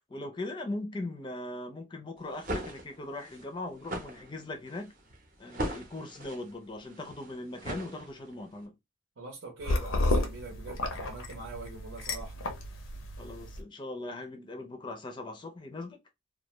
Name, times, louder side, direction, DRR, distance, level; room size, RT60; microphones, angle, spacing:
voice 1, 0.0-5.0 5.4-8.7 13.2-16.0, left 2 dB, 20° left, 0.4 m, -40 dB
sound 1, 2.2-8.5, right 1 dB, 40° right, 0.7 m, -40 dB
voice 2, 9.2-12.3, right 3 dB, 85° right, 0.8 m, -44 dB
sound 2, 9.6-13.6, left 2 dB, 80° left, 0.6 m, -32 dB
2.3 x 2.1 x 3.0 m
head